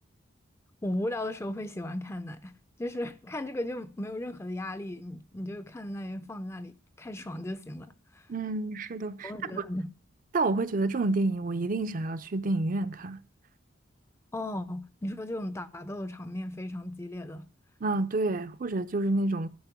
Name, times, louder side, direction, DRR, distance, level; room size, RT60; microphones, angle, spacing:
voice 1, 0.8-2.5 2.8-8.3 9.2-9.9 14.3-17.5, left 1 dB, 15° left, 0.5 m, -36 dB
voice 2, 8.3-9.6 10.3-13.2 17.8-19.5, right 2 dB, 40° right, 0.5 m, -29 dB
12.5 x 5.3 x 5.9 m
head